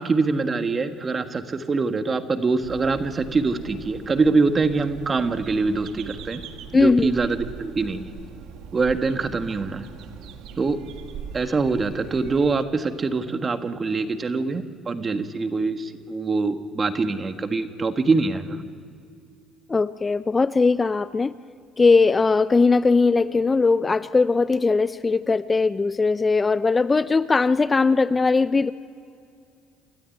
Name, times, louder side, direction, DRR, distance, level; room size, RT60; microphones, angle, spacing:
voice 1, 0.0-6.4 6.7-8.1 8.7-9.9 10.6-10.8 11.3-18.6, right 4 dB, 35° right, 8 dB, 1.7 m, -24 dB
sound 1, 2.6-12.6, right 7 dB, 75° right, 1.6 m, -41 dB
voice 2, 6.7-7.1 19.7-21.3 21.8-28.7, left 4 dB, 25° left, 15 dB, 0.5 m, -19 dB
28.0 x 13.0 x 9.3 m, 2.4 s
supercardioid pair, 75°, 0 cm